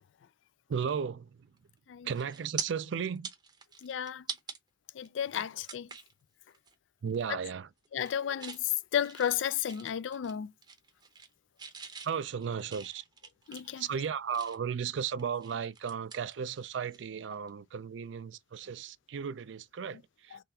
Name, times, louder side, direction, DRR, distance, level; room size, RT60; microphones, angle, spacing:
voice 1, 0.7-1.6 2.0-3.3 7.0-7.7 12.0-13.1 13.8-20.4, right 7 dB, 75° right, 0.4 m, -35 dB
sound 1, 1.6-1.8 2.1-2.7 3.1-4.6 5.0-5.1 5.6-6.1 6.5-6.7 7.1-7.5 7.8-8.6 9.0-10.4 10.6-11.3 11.6-14.7 15.2-17.0 17.3-17.5 19.4-19.5, right 6 dB, 25° right, 0.7 m, -44 dB
voice 2, 3.8-4.2 4.9-5.9 7.9-10.5 13.5-13.8, left 9 dB, 80° left, 0.3 m, -32 dB
3.8 x 3.3 x 2.7 m
head